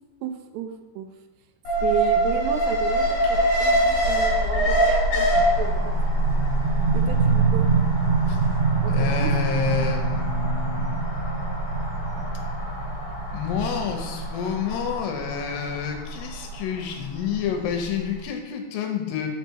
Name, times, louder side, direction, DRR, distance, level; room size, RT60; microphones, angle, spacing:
voice 1, 0.2-1.1 1.8-6.1 6.9-7.7 8.8-9.3, right 9 dB, 85° right, 6 dB, 2.8 m, -33 dB
Alarm, 1.6-17.8 18.1-18.2, right 1 dB, 55° left, 2.7 m, -25 dB
sound 1, 5.3-16.8, right 5 dB, 60° right, 2.7 m, -27 dB
voice 2, 8.9-11.0 13.3-19.3, left 7 dB, 80° left, 4 dB, 2.9 m, -29 dB
6.0 x 5.5 x 4.5 m, 1.1 s
omnidirectional pair, 4.8 m